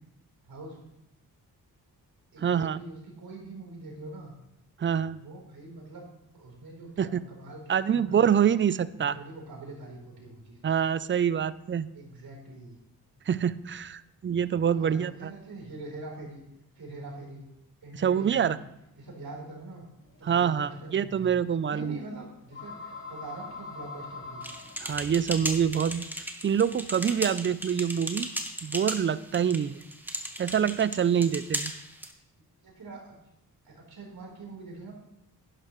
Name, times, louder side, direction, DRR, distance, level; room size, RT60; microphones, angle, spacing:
voice 1, 0.4-0.8 2.3-4.3 5.2-6.1 6.3-8.4 9.0-10.7 11.9-12.8 14.8-16.4 16.8-17.4 17.8-18.6 19.0-19.9 20.2-21.4 21.7-24.5 32.6-33.2 33.6-34.9, right 2 dB, 65° right, -2 dB, 4.0 m, -43 dB
voice 2, 2.4-2.8 4.8-5.2 7.0-7.2 7.7-9.2 10.6-11.9 13.3-15.3 17.9-18.6 20.2-22.0 24.8-26.0 26.4-28.3 28.6-29.9 30.4-31.7, right 8 dB, 30° right, 17 dB, 0.5 m, -26 dB
sound 1, 20.0-26.0, left 4 dB, 30° left, 2.2 m, -44 dB
sound 2, 24.4-32.1, equal, 5° right, 1.4 m, -36 dB
11.0 x 11.0 x 3.1 m, 0.86 s
cardioid pair, 65°, 39 cm